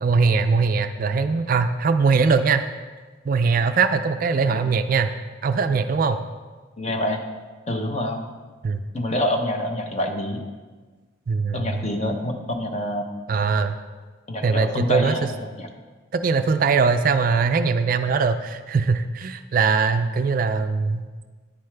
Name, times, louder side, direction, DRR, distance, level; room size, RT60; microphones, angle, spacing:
voice 1, 0.0-2.6 3.3-5.1 5.4-6.2 8.6-8.8 11.3-11.8 13.3-13.8 14.4-15.2 16.1-21.0, right 4 dB, 45° right, 9 dB, 0.3 m, -21 dB
voice 2, 6.8-7.2 7.7-8.3 8.9-10.4 11.5-13.1 14.3-15.7, left 1 dB, 30° left, 4 dB, 0.8 m, -26 dB
9.8 x 9.2 x 3.3 m, 1.4 s
head